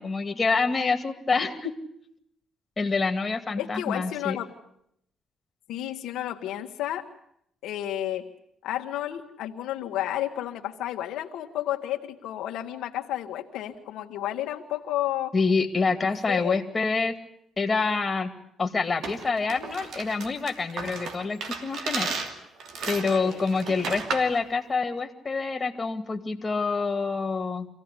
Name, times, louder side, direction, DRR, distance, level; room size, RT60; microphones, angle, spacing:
voice 1, 0.0-1.7 2.8-4.4 15.3-17.1 17.6-18.3 18.6-22.1 22.9-27.7, left 4 dB, 30° left, 7 dB, 2.4 m, -27 dB
voice 2, 3.6-4.5 5.7-7.0 7.6-8.2 8.6-15.3 16.3-16.6 23.0-23.5, left 12 dB, 85° left, 3 dB, 1.5 m, -31 dB
sound 1, 19.0-24.4, right 4 dB, 75° right, 2.7 m, -34 dB
25.5 x 16.0 x 9.9 m, 0.75 s
cardioid pair, 90°, 0 cm